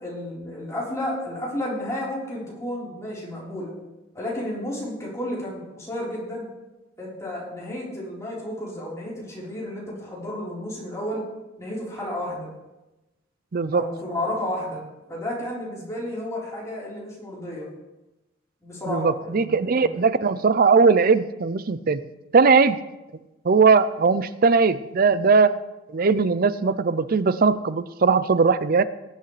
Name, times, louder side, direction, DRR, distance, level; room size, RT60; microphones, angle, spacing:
voice 1, 0.0-3.7 4.1-6.5 7.0-11.2 11.6-12.5 13.7-14.8 15.1-17.7 18.6-20.0, left 1 dB, 15° left, -6 dB, 4.1 m, -32 dB
voice 2, 13.5-13.8 18.9-22.0 22.3-22.8 23.4-25.6 25.9-28.8, right 4 dB, 45° right, 14 dB, 0.5 m, -19 dB
19.5 x 8.2 x 3.3 m, 1.0 s
head